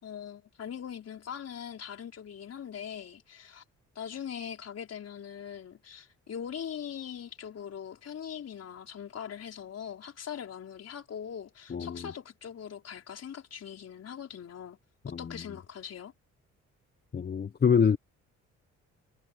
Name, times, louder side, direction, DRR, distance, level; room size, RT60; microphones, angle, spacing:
voice 1, 0.0-3.6 3.9-14.8 15.1-16.1, left 8 dB, 55° left, 4.5 m, -41 dB
voice 2, 11.7-12.1 15.1-15.3 17.1-18.0, left 7 dB, 35° left, 0.8 m, -25 dB
cardioid pair, 90°, 30 cm